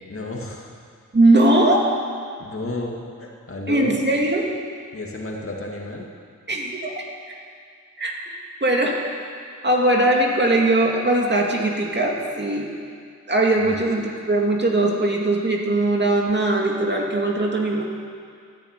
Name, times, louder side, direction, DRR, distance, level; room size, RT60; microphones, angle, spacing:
voice 1, 0.1-0.7 2.4-4.0 4.9-6.1 13.6-13.8, left 2 dB, 45° left, -1 dB, 2.3 m, -32 dB
voice 2, 1.1-1.9 3.7-4.5 6.5-6.9 8.0-8.1 8.6-9.0 9.6-12.7 13.3-17.8, right 2 dB, 35° right, 0 dB, 2.3 m, -20 dB
13.5 x 10.5 x 9.2 m, 2.3 s
wide cardioid pair, 110°, 31 cm